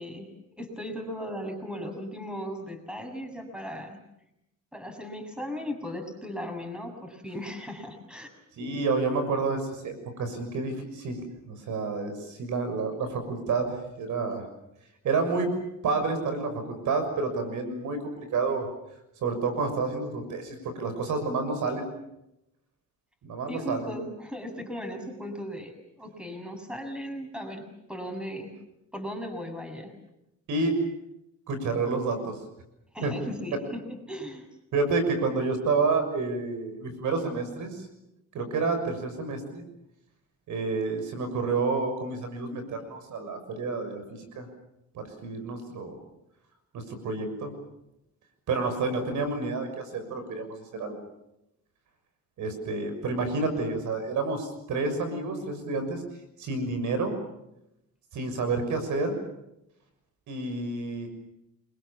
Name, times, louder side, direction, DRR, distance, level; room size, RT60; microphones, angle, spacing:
voice 1, 0.0-4.0 4.7-8.3 23.5-28.5 28.9-30.0 32.9-34.5, equal, 5° right, 5 dB, 7.0 m, -37 dB
voice 2, 8.6-14.4 15.0-15.5 15.8-18.7 19.2-21.9 23.2-23.9 30.5-30.8 31.5-32.4 33.0-33.1 34.7-37.9 38.3-39.6 40.5-44.5 44.9-46.0 46.7-47.5 48.5-51.0 52.4-56.0 56.4-57.2 58.1-59.2 60.3-61.1, right 3 dB, 75° right, 8 dB, 6.5 m, -29 dB
29.0 x 23.0 x 7.3 m, 0.85 s
cardioid pair, 90°, 30 cm